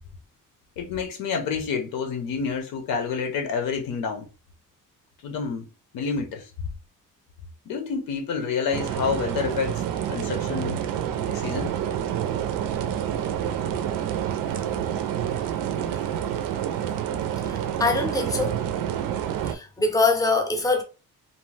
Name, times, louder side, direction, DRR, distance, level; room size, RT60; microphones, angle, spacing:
voice 1, 0.8-4.3 5.2-5.7 5.9-6.5 7.7-9.8 10.1-10.8 11.3-11.7, left 5 dB, 80° left, 0.7 m, -28 dB
sound 1, 8.7-19.6, right 10 dB, 75° right, 0.5 m, -28 dB
voice 2, 17.5-18.5 19.5-20.8, left 3 dB, 10° left, 0.5 m, -23 dB
2.7 x 2.1 x 3.1 m
cardioid pair, 150°, 34 cm